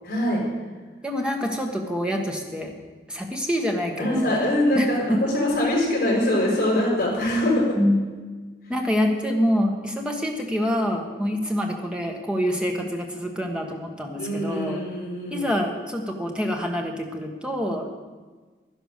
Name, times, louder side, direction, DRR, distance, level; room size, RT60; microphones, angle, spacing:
voice 1, 0.0-0.4 4.0-7.8 14.2-15.5, left 1 dB, 50° left, -3 dB, 5.1 m, -23 dB
voice 2, 1.0-2.7 3.1-4.3 4.7-4.9 7.7-8.0 8.7-14.8 15.3-17.9, equal, 5° right, 2 dB, 1.3 m, -26 dB
11.0 x 11.0 x 6.6 m, 1.4 s
head